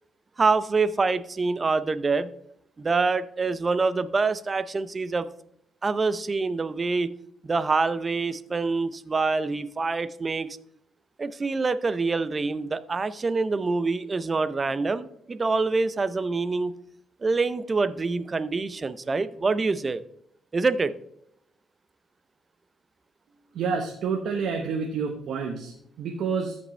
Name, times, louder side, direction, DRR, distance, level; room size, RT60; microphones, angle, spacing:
voice 1, 0.4-2.3 2.8-5.3 5.8-7.1 7.4-10.6 11.2-16.7 17.2-20.0 20.5-20.9, right 4 dB, 30° right, 0.6 m, -26 dB
voice 2, 23.5-26.6, right 5 dB, 70° right, 1.0 m, -29 dB
13.5 x 5.3 x 3.2 m
cardioid pair, 90°, 0 cm